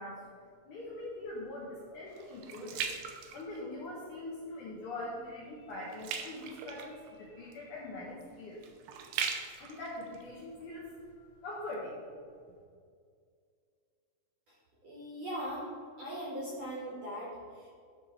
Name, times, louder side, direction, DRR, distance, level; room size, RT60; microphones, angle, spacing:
voice 1, 0.0-2.8 3.3-8.6 9.0-9.3 9.6-12.0, left 1 dB, 65° left, -6 dB, 2.1 m, -43 dB
sound 1, 0.8-4.1 4.6-4.9 5.2-11.2 11.7-11.8, right 6 dB, 85° right, 2.4 m, -41 dB
voice 2, 14.8-15.7 16.0-17.7, equal, 50° right, -6 dB, 2.1 m, -40 dB
12.0 x 4.3 x 4.5 m, 2.2 s
omnidirectional pair, 4.8 m